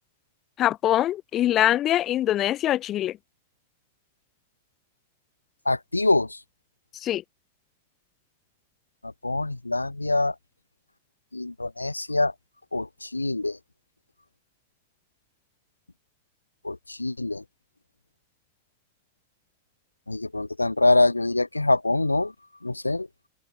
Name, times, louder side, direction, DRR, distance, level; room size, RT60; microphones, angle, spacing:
voice 1, 0.6-3.2 7.0-7.2, left 12 dB, 30° left, 2.9 m, -23 dB
voice 2, 5.7-6.3 9.2-10.3 11.3-12.3 12.7-13.6 16.6-17.4 20.1-22.3 22.6-23.1, left 2 dB, 85° left, 1.0 m, -24 dB
open air
figure-of-eight pair, 90°, 0 cm